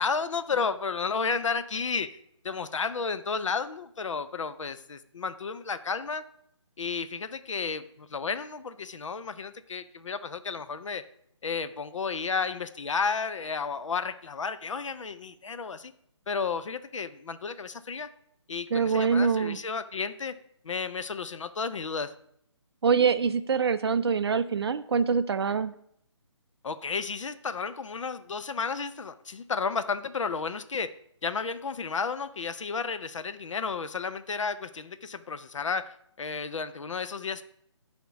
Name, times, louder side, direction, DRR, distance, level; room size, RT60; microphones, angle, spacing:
voice 1, 0.0-2.2 2.4-6.3 6.8-11.0 11.4-15.9 16.3-18.1 18.5-20.3 20.6-22.1 26.6-30.9 31.2-37.4, left 5 dB, 80° left, 12 dB, 0.5 m, -32 dB
voice 2, 18.7-19.6 22.8-25.7, right 5 dB, 55° right, 13 dB, 0.4 m, -24 dB
10.0 x 3.6 x 5.7 m, 0.71 s
hypercardioid pair, 160°, 16 cm